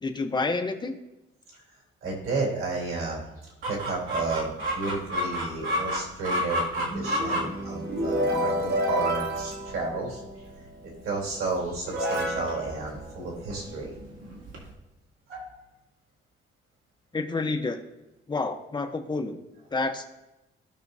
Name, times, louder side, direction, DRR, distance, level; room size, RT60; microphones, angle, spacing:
voice 1, 0.0-1.0 17.1-17.8 18.3-19.4 19.7-20.1, left 3 dB, 20° left, 5 dB, 0.8 m, -29 dB
voice 2, 2.0-3.2 3.7-10.2 10.8-13.9 15.3-15.5, right 3 dB, 90° right, -2 dB, 3.3 m, -32 dB
Chicken rooster, 3.6-14.7, equal, 70° right, 2.3 m, -33 dB
sound 1, 6.8-10.5 11.3-11.4 11.9-13.8, equal, 50° right, 1.8 m, -30 dB
16.5 x 5.8 x 2.7 m, 0.97 s
cardioid pair, 140°, 21 cm